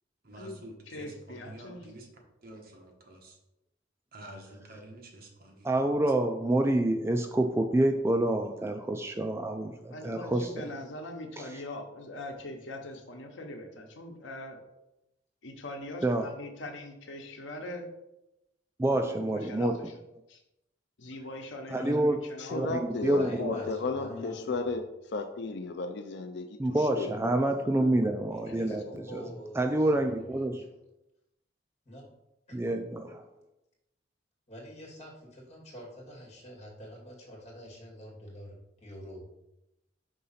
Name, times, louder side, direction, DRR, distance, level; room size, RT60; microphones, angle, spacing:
voice 1, 0.2-2.1 2.4-3.4 4.1-5.7, right 1 dB, 55° right, 1 dB, 1.3 m, -48 dB
voice 2, 0.9-1.8 9.9-14.6 15.4-17.9 19.0-19.9 20.3-20.4 21.0-22.7 28.5-28.8, left 1 dB, 80° left, 4 dB, 1.0 m, -42 dB
voice 3, 5.6-10.5 16.0-16.2 18.8-19.7 21.7-22.2 22.5-23.5 26.6-28.8 29.1-29.2 29.6-30.6 32.5-33.2, right 1 dB, 15° right, 5 dB, 0.3 m, -27 dB
voice 4, 22.4-24.8 25.1-27.1 27.6-27.9, left 3 dB, 65° left, 6 dB, 0.5 m, -34 dB
voice 5, 23.1-24.8 28.3-30.7 31.9-32.0 32.5-32.7 34.5-39.2, equal, 40° left, -3 dB, 2.3 m, -45 dB
5.4 x 3.8 x 5.7 m, 0.91 s
head